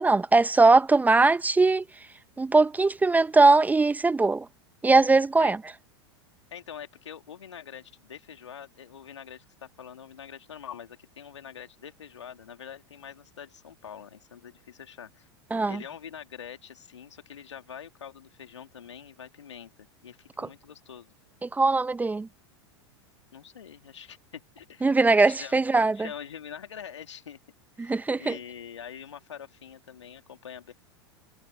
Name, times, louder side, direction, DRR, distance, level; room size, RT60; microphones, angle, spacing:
voice 1, 0.0-1.8 2.4-4.5 4.8-5.6 15.5-15.8 20.4-20.5 21.4-22.3 24.8-26.1 27.8-28.4, right 3 dB, 10° right, 0.7 m, -21 dB
voice 2, 6.5-15.3 15.7-21.1 23.3-27.4 27.8-30.7, left 8 dB, 80° left, 2.6 m, -44 dB
hypercardioid pair, 95°, 15 cm